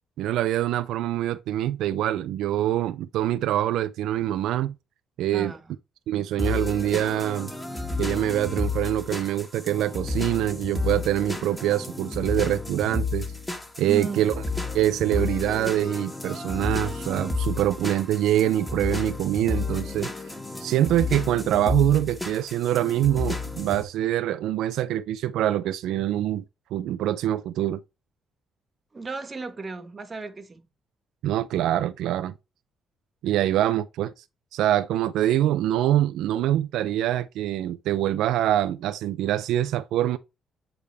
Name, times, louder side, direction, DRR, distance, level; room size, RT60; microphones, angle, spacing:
voice 1, 0.2-4.7 5.2-5.5 6.1-7.5 8.0-13.3 13.8-14.3 14.7-20.1 20.6-26.4 26.7-27.8 31.2-32.3 33.2-34.2 34.5-40.2, right 12 dB, 85° right, 0.4 m, -24 dB
voice 2, 5.3-5.8 13.9-14.2 28.9-30.6, right 4 dB, 30° right, 1.3 m, -35 dB
sound 1, 6.4-23.8, left 3 dB, 10° left, 1.8 m, -31 dB
8.5 x 3.4 x 3.4 m
cardioid pair, 90°, 0 cm